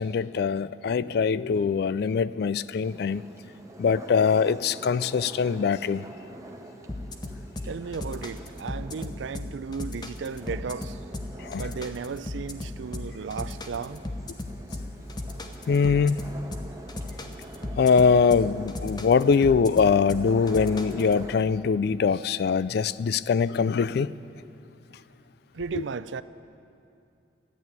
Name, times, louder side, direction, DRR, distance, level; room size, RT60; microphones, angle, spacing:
voice 1, 0.0-3.2 3.8-6.0 11.4-11.7 15.7-16.2 17.8-24.1, left 5 dB, 55° left, 0.3 m, -23 dB
sound 1, 2.8-21.4, right 1 dB, 15° right, 0.9 m, -46 dB
sound 2, 6.9-21.1, left 1 dB, 20° left, 0.8 m, -36 dB
voice 2, 7.7-11.0 11.6-14.0 25.5-26.2, right 5 dB, 80° right, 0.4 m, -35 dB
13.5 x 8.7 x 9.3 m
head